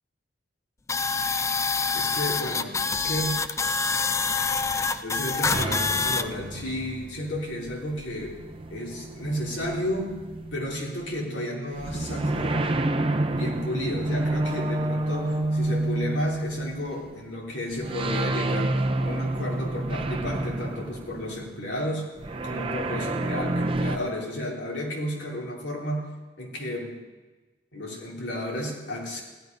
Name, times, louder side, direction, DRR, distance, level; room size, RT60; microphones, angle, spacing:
sound 1, 0.9-6.2, left 4 dB, 15° left, 0.4 m, -26 dB
voice 1, 1.9-3.4 5.0-8.3 8.7-10.1 10.5-12.7 13.3-22.1 22.4-26.1 26.4-26.9 27.7-29.2, equal, 75° left, -2 dB, 3.2 m, -32 dB
sound 2, 5.5-11.1 11.7-17.2 17.7-21.6 22.2-24.0, right 2 dB, 30° right, 0.7 m, -29 dB
16.0 x 11.5 x 5.3 m, 1.2 s
head